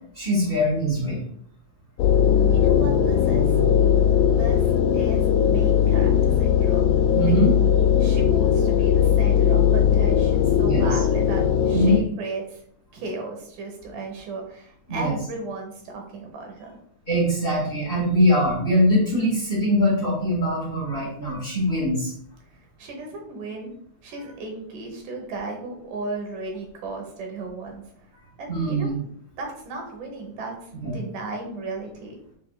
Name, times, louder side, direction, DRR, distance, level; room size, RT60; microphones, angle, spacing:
voice 1, 0.1-1.2 7.1-7.5 10.6-10.9 11.7-12.0 14.9-15.1 17.1-22.1 28.5-29.0 30.8-30.9, equal, 25° left, -7 dB, 1.5 m, -22 dB
sound 1, 2.0-12.0, left 8 dB, 80° left, 1.9 m, -19 dB
voice 2, 2.5-3.6 4.4-6.9 7.3-7.4 8.0-12.6 12.9-16.8 22.5-23.7 24.0-27.8 28.4-28.9 29.3-32.2, right 3 dB, 80° right, 1 dB, 2.6 m, -35 dB
6.6 x 3.5 x 2.3 m, 0.65 s
omnidirectional pair, 3.6 m